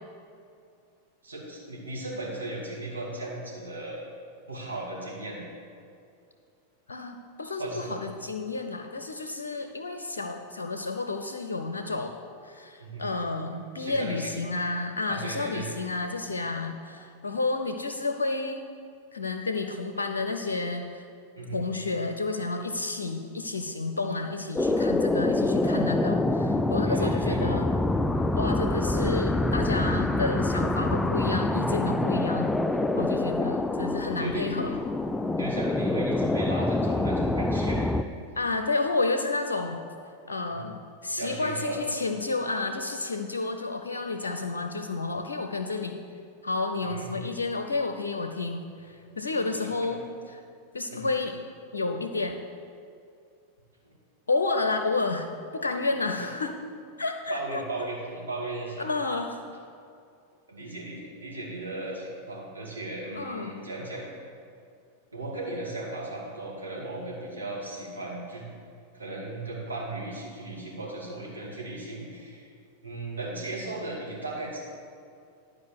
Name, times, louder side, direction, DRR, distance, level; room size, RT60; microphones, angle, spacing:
voice 1, 1.2-4.1 4.5-5.4 7.6-7.9 12.8-13.1 13.8-14.3 15.1-15.7 21.3-21.6 26.8-27.4 33.4-33.5 34.2-34.5 35.4-37.9 40.5-40.6 41.2-41.8 46.8-47.2 49.1-49.9 50.9-51.1 53.8-53.9 56.1-56.3 57.3-58.9 60.5-64.1 65.1-68.4 68.9-72.5 72.8-74.6, right 2 dB, 80° right, -5 dB, 2.7 m, -36 dB
voice 2, 6.9-12.2 12.4-18.6 19.1-21.0 21.5-27.7 28.4-34.8 38.4-39.8 40.3-46.0 46.4-50.0 50.3-50.4 50.7-51.4 51.7-52.4 54.3-56.6 57.0-57.6 58.8-59.4 63.1-63.6, left 3 dB, 70° left, 6 dB, 0.5 m, -31 dB
sound 1, 24.6-38.0, left 2 dB, 5° left, 0.3 m, -26 dB
11.0 x 4.8 x 6.6 m, 2.5 s
figure-of-eight pair, 90°, 0 cm